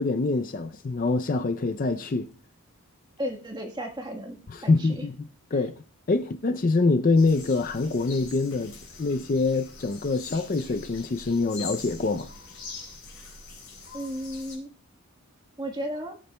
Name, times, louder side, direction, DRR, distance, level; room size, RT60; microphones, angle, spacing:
voice 1, 0.0-2.3 4.5-5.7 6.1-12.3, left 3 dB, 40° left, 0.4 m, -25 dB
voice 2, 3.2-4.4 4.6-5.0 5.5-5.6 13.9-14.7 15.6-16.1, equal, 20° right, 1.3 m, -34 dB
sound 1, 7.2-14.6, left 4 dB, 60° left, 4.4 m, -43 dB
21.0 x 8.2 x 2.2 m
head